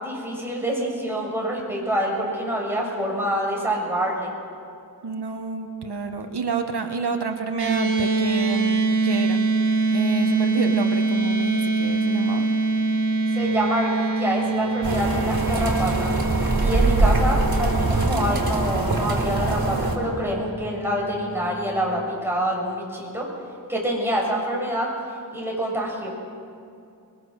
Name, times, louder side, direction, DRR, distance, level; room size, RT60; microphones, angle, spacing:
voice 1, 0.0-4.3 13.3-16.1 16.6-23.3 23.7-24.9 25.3-26.1, equal, 5° right, -3 dB, 7.4 m, -26 dB
voice 2, 5.0-9.5 9.9-12.5, right 4 dB, 85° right, 5 dB, 1.4 m, -29 dB
sound 1, 7.6-22.0, right 3 dB, 45° right, 3.3 m, -25 dB
sound 2, 14.8-20.0, right 2 dB, 65° right, 3.7 m, -23 dB
26.5 x 22.0 x 6.5 m, 2.5 s
wide cardioid pair, 80°, 39 cm